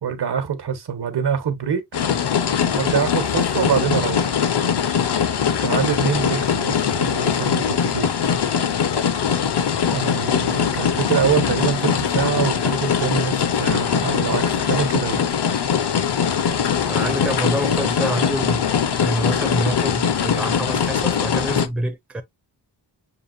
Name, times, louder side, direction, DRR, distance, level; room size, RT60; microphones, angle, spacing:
voice 1, 0.0-1.8 2.7-4.4 5.6-8.1 9.8-15.3, right 7 dB, 65° right, 1.1 m, -25 dB
sound 1, 1.9-21.7, left 7 dB, 70° left, 0.7 m, -21 dB
voice 2, 16.9-22.2, right 1 dB, 5° right, 0.5 m, -26 dB
6.8 x 2.5 x 2.4 m
wide cardioid pair, 105°, 42 cm